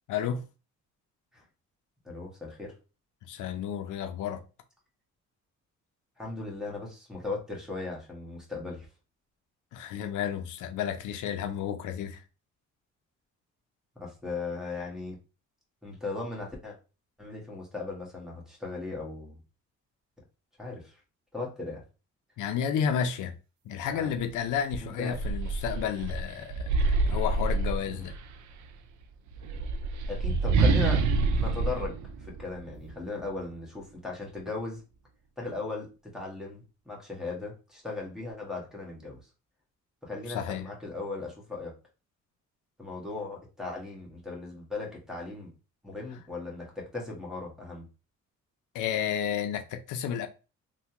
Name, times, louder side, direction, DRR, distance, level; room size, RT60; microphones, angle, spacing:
voice 1, 0.1-0.5 3.3-4.4 9.7-12.2 22.4-23.3 23.7-26.7 27.1-28.1 40.3-40.7 48.7-50.3, left 8 dB, 80° left, 0.5 m, -31 dB
voice 2, 2.0-2.7 6.2-8.9 13.9-15.2 15.8-16.8 17.2-19.4 20.6-20.9 21.3-21.8 23.9-24.1 24.8-25.2 27.9-28.0 30.1-31.0 31.4-34.8 35.4-39.2 40.0-41.7 42.8-45.5 45.8-47.8, left 3 dB, ahead, 1.4 m, -37 dB
sound 1, 24.1-24.3 24.7-28.3 29.3-32.9, right 3 dB, 70° right, 0.5 m, -27 dB
3.3 x 2.2 x 2.9 m
cardioid pair, 90°, 30 cm